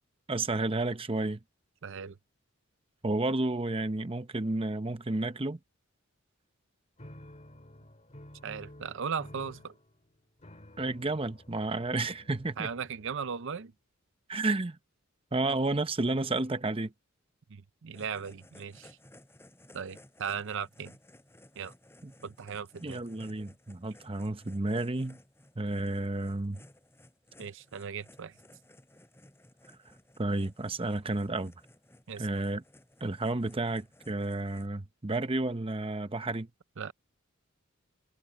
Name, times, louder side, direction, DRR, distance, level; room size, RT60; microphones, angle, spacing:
voice 1, 0.3-1.4 3.0-5.6 10.8-12.7 14.3-14.8 15.3-16.9 22.0-22.1 22.8-25.2 25.6-26.6 30.2-31.5 32.2-32.6 33.0-36.5, right 2 dB, 25° right, 0.8 m, -31 dB
voice 2, 1.8-2.2 8.4-9.7 12.6-13.7 17.5-19.0 19.7-20.9 21.6-21.7 22.2-23.0 27.4-28.3 32.1-32.3 36.8-36.9, right 6 dB, 60° right, 0.6 m, -37 dB
sound 1, 7.0-13.5, left 1 dB, 35° left, 2.0 m, -52 dB
sound 2, 17.9-34.7, left 1 dB, 10° left, 7.1 m, -58 dB
head